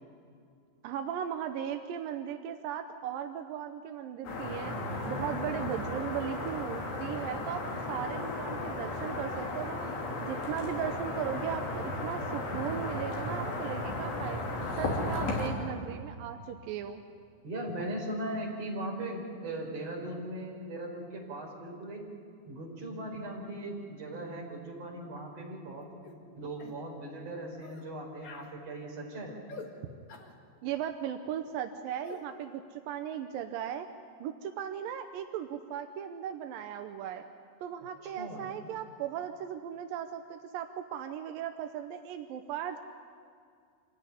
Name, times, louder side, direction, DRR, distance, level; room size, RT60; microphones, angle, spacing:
voice 1, 0.8-4.8 5.1-9.9 10.2-14.4 14.8-17.0 30.6-33.9 34.2-37.2 37.6-42.8, right 9 dB, 75° right, 7 dB, 2.1 m, -37 dB
sound 1, 4.2-15.5, left 2 dB, 75° left, 5.3 m, -35 dB
voice 2, 17.4-22.0 22.5-25.9 26.4-29.4 38.2-38.5, right 1 dB, 35° right, -1 dB, 5.7 m, -39 dB
sound 2, 26.0-26.2 26.6-26.8 27.6-27.9 28.2-28.5 29.5-29.7 30.1-30.3 32.0-32.2, left 4 dB, 50° left, 2.7 m, -46 dB
26.5 x 16.5 x 10.0 m, 2.3 s
omnidirectional pair, 4.9 m